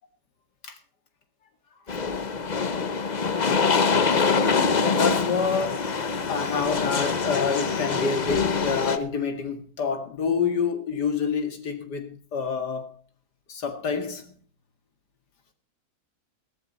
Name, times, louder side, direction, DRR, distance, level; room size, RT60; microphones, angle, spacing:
sound 1, 1.9-9.0, left 5 dB, 35° left, 0.8 m, -24 dB
voice 1, 4.8-5.9 6.3-12.9 13.5-14.2, left 5 dB, 90° left, 7 dB, 2.6 m, -27 dB
15.5 x 13.0 x 4.2 m, 0.32 s
omnidirectional pair, 1.7 m